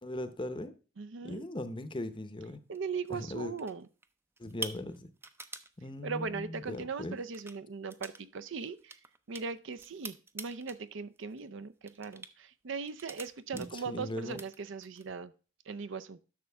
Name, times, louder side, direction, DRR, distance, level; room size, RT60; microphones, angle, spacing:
voice 1, 0.0-0.7 1.2-2.6 3.1-3.5 4.4-5.1 5.8-7.2 13.5-14.4, left 1 dB, 25° left, 11 dB, 0.7 m, -39 dB
voice 2, 1.0-1.4 2.7-3.9 6.0-9.0 9.3-15.3 15.7-16.2, right 5 dB, 65° right, 12 dB, 0.5 m, -39 dB
sound 1, 2.7-3.2 3.6-4.1 4.4-5.7 6.7-6.8 7.2-7.6 7.9-8.2 8.5-10.8 11.2-11.5 11.9-12.3 12.9-14.0 14.3-15.1, right 3 dB, 10° right, 0.5 m, -45 dB
11.0 x 6.5 x 3.4 m, 0.35 s
head